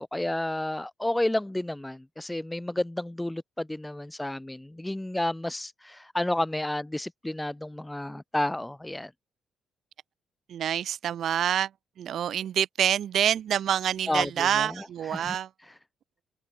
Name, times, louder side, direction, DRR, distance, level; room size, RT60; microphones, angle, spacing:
voice 1, 0.0-9.1 14.1-15.4, left 1 dB, 10° left, 1.8 m, -31 dB
voice 2, 10.5-11.7 12.0-15.5, right 10 dB, 65° right, 4.3 m, -27 dB
open air
cardioid pair, 110°, 0 cm